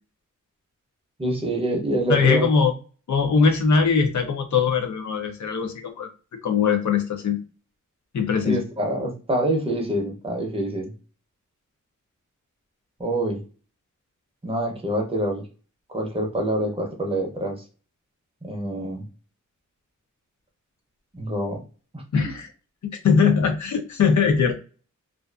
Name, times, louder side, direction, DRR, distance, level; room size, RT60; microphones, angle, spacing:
voice 1, 1.2-2.5 8.4-10.9 13.0-13.4 14.4-15.4 15.9-17.6 18.4-19.0 21.1-21.6 21.9-22.3, right 1 dB, 20° right, 1 dB, 0.6 m, -26 dB
voice 2, 2.1-2.7 3.1-6.1 6.4-7.4 8.1-8.6 22.1-22.5 23.0-24.5, left 5 dB, 70° left, 5 dB, 0.6 m, -21 dB
2.4 x 2.3 x 2.3 m, 0.37 s
wide cardioid pair, 170°, 31 cm